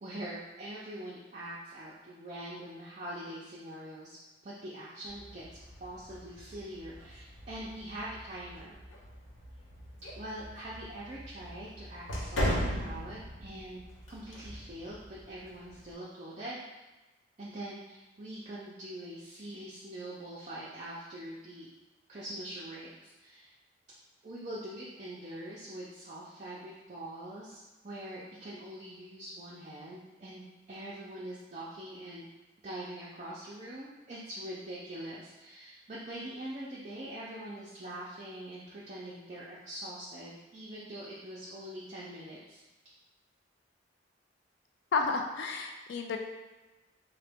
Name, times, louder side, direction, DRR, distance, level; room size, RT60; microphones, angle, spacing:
voice 1, 0.0-4.2 4.4-5.4 5.8-8.8 10.1-13.8 14.1-16.6 17.4-21.7 22.1-23.5 24.2-32.2 32.6-42.6, right 1 dB, 35° right, -7 dB, 0.5 m, -43 dB
sound 1, 5.0-15.9, equal, 85° left, 0.8 m, -39 dB
voice 2, 44.9-46.2, left 4 dB, 60° left, 4 dB, 0.3 m, -31 dB
3.8 x 2.1 x 3.4 m, 1.1 s
head